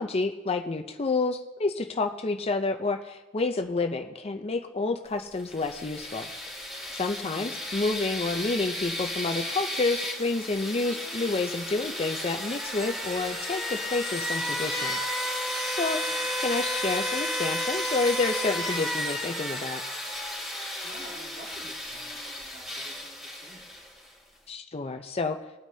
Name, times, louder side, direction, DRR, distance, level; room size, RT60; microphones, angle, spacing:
voice 1, 0.0-6.3 6.9-15.1 15.7-16.0 16.4-19.8 24.5-25.4, left 3 dB, 30° left, 6 dB, 0.6 m, -29 dB
sound 1, 5.4-24.1, left 1 dB, ahead, 2.7 m, -33 dB
voice 2, 7.2-7.5 16.1-16.3 20.8-23.9, right 1 dB, 40° right, -6 dB, 3.3 m, -50 dB
21.0 x 9.3 x 2.8 m, 1.1 s
head